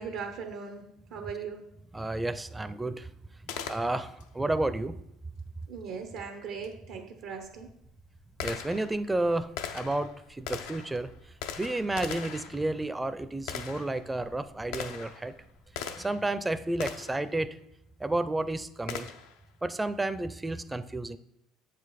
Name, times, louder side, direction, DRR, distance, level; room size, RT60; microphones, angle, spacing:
voice 1, 0.0-1.7 5.7-7.7, right 6 dB, 75° right, 4 dB, 0.7 m, -39 dB
voice 2, 1.9-3.1 3.7-5.0 8.4-11.1 11.6-15.3 16.0-17.5 18.0-19.1 19.6-21.2, right 2 dB, 15° right, 13 dB, 0.5 m, -31 dB
Gunshot gunfire, 3.5-4.3 6.6-6.7 7.4-16.3 16.8-17.3 18.9-19.4, left 7 dB, 85° left, 0.6 m, -40 dB
7.4 x 5.1 x 4.2 m, 0.78 s
supercardioid pair, 80°, 0 cm